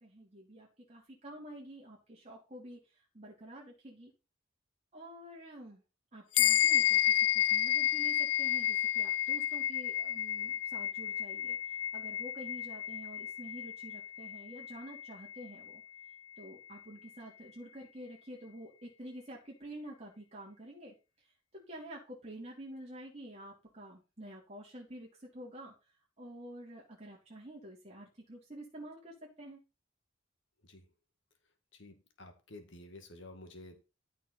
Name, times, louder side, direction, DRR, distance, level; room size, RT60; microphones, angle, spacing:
voice 1, 0.0-4.1 4.9-5.8 6.1-15.8 16.4-25.7 26.2-29.6, right 1 dB, 30° right, -4 dB, 3.0 m, -49 dB
sound 1, 6.3-16.1, left 12 dB, 90° left, 0.4 m, -31 dB
voice 2, 31.7-33.8, left 2 dB, 60° left, 6 dB, 2.1 m, -51 dB
13.5 x 5.9 x 4.2 m, 0.30 s
head